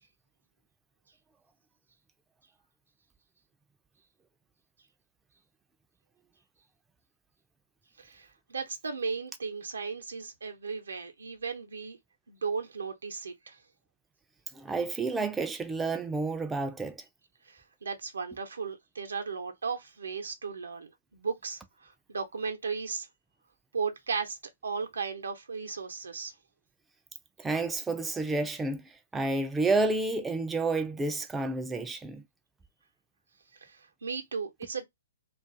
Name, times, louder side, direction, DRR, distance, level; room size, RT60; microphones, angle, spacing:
voice 1, 8.0-12.0 12.3-13.6 17.4-23.1 23.7-26.3 33.5-34.8, right 5 dB, 80° right, 0.7 m, -36 dB
voice 2, 14.5-17.0 27.4-32.2, right 3 dB, 10° right, 0.3 m, -30 dB
2.4 x 2.3 x 2.5 m
hypercardioid pair, 130°, 0 cm